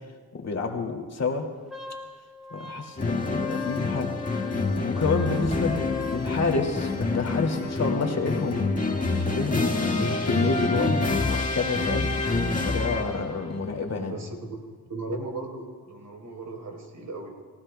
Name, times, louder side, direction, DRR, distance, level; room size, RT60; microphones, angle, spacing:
voice 1, 0.3-1.5 2.5-8.7 9.1-12.1 12.6-14.1, left 4 dB, 45° left, 2 dB, 2.3 m, -29 dB
Wind instrument woodwind instrument, 1.7-6.3, left 5 dB, ahead, 2.4 m, -40 dB
sound 1, 3.0-13.4, left 3 dB, 20° left, 1.8 m, -27 dB
voice 2, 14.0-14.4 14.9-17.3, right 2 dB, 60° right, 2 dB, 3.7 m, -36 dB
29.0 x 16.0 x 2.2 m, 1.5 s
cardioid pair, 75°, 35 cm